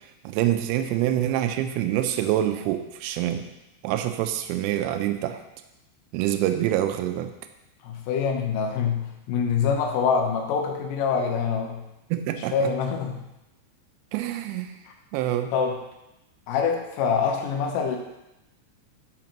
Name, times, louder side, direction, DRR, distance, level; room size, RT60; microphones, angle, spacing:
voice 1, 0.2-3.5 3.8-5.4 6.1-7.3 12.1-12.7 14.1-14.7 15.1-15.5, right 12 dB, 85° right, 8 dB, 2.6 m, -26 dB
voice 2, 7.8-11.8 12.5-13.2 14.9-15.0 15.5-15.8 16.5-18.0, left 6 dB, 85° left, 1 dB, 3.6 m, -25 dB
12.5 x 5.2 x 3.0 m, 0.92 s
omnidirectional pair, 5.6 m